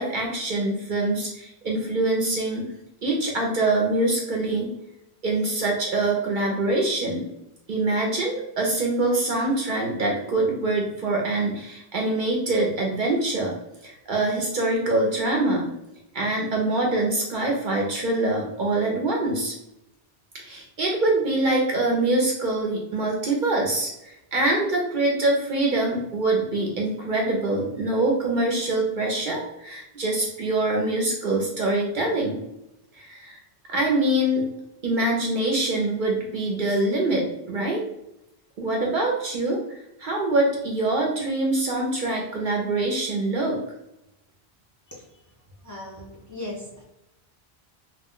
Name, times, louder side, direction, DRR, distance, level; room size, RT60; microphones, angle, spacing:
voice 1, 0.0-2.6 3.0-4.7 5.2-7.3 7.7-13.5 13.8-15.7 16.1-19.5 20.4-32.4 32.9-33.4 33.7-34.4 34.8-37.8 38.6-39.6 40.0-43.6, right 2 dB, 55° right, -1 dB, 0.6 m, -24 dB
voice 2, 45.6-46.8, left 1 dB, 20° left, -5 dB, 0.5 m, -37 dB
2.3 x 2.1 x 3.6 m, 0.86 s
omnidirectional pair, 1.1 m